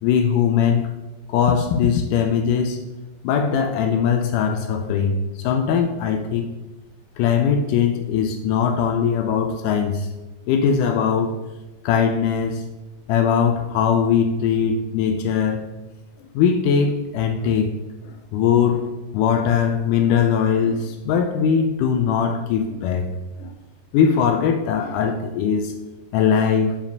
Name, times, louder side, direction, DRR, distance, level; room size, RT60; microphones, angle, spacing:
voice 1, 0.0-0.9 1.3-2.8 3.2-6.5 7.2-10.1 10.5-11.4 11.8-12.6 13.1-15.7 16.4-17.8 18.1-23.5 23.9-25.8 26.1-26.8, left 7 dB, 80° left, 1.9 m, -20 dB
6.4 x 5.2 x 5.2 m
omnidirectional pair, 4.1 m